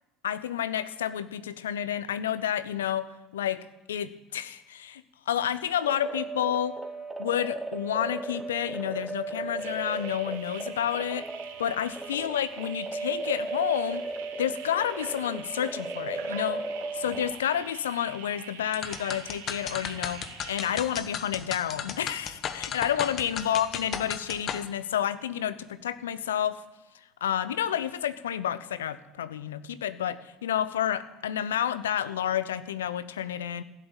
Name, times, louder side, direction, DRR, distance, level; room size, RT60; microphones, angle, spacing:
voice 1, 0.2-6.8 7.2-11.3 11.6-14.0 14.4-16.6 16.9-26.6 27.2-33.6, left 10 dB, 80° left, 15 dB, 0.7 m, -30 dB
sound 1, 5.8-17.3, right 3 dB, 10° right, 1.5 m, -36 dB
sound 2, 9.6-20.8, right 7 dB, 75° right, 2.2 m, -45 dB
sound 3, 18.7-24.7, left 8 dB, 45° left, 1.2 m, -35 dB
15.5 x 8.2 x 8.9 m, 1.0 s
hypercardioid pair, 65°, 0 cm